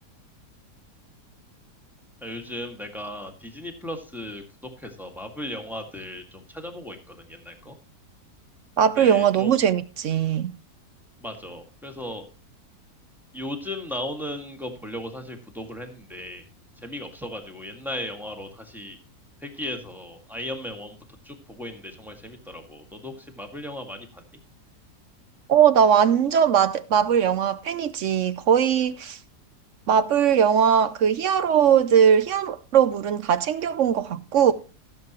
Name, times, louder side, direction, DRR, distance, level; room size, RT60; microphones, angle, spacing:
voice 1, 2.2-4.4 4.8-7.8 9.0-9.7 11.2-12.3 13.3-16.4 16.8-19.0 19.4-21.0 21.2-24.2, left 1 dB, ahead, 1.8 m, -36 dB
voice 2, 8.8-10.5 25.5-29.2 29.9-34.5, right 8 dB, 65° right, 0.8 m, -20 dB
16.0 x 7.9 x 3.0 m
omnidirectional pair, 1.8 m